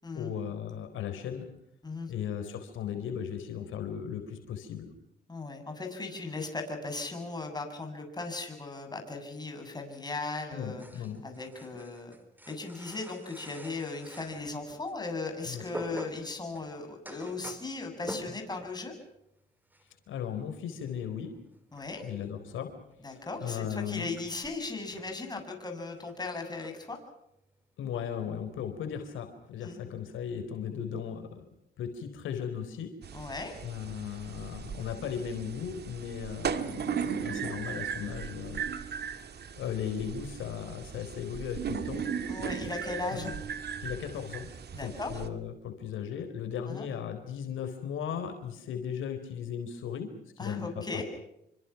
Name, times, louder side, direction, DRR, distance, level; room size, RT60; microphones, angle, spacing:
voice 1, 0.1-1.5 2.1-4.9 10.5-11.2 15.5-15.6 20.1-21.3 22.0-22.7 23.1-24.1 27.8-31.4 31.8-32.9 33.2-33.3 33.6-38.7 39.6-42.0 43.1-43.3 43.8-44.5 44.8-51.0, left 8 dB, 80° left, 6 dB, 4.2 m, -37 dB
voice 2, 5.3-10.9 11.2-12.2 12.5-18.9 21.7-22.0 23.0-27.0 29.6-29.8 33.1-33.5 42.3-43.3 44.7-45.1 46.7-46.9 50.4-51.0, left 3 dB, 20° left, 4 dB, 7.9 m, -37 dB
sound 1, 10.8-15.0 15.3-18.9 19.1-19.4 19.7-20.1 20.3-28.3 28.6-29.0 29.2-30.2, equal, 10° right, 4.6 m, -48 dB
sound 2, 33.0-45.3, right 7 dB, 55° right, 2.2 m, -37 dB
28.0 x 25.0 x 6.0 m, 0.80 s
cardioid pair, 90°, 20 cm